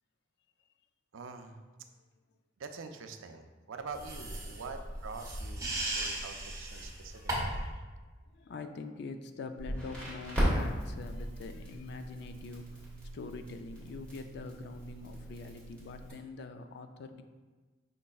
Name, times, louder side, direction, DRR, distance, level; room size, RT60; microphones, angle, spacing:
voice 1, 1.1-1.6 2.6-7.6, right 4 dB, 90° right, 6 dB, 0.4 m, -45 dB
sound 1, 3.9-7.7, right 1 dB, 15° right, 0.8 m, -37 dB
voice 2, 6.7-7.8 8.3-12.7 13.1-17.2, left 3 dB, 60° left, 7 dB, 0.3 m, -44 dB
Crackle, 9.6-16.1, equal, 5° left, 1.3 m, -37 dB
5.2 x 4.1 x 2.3 m, 1.3 s
head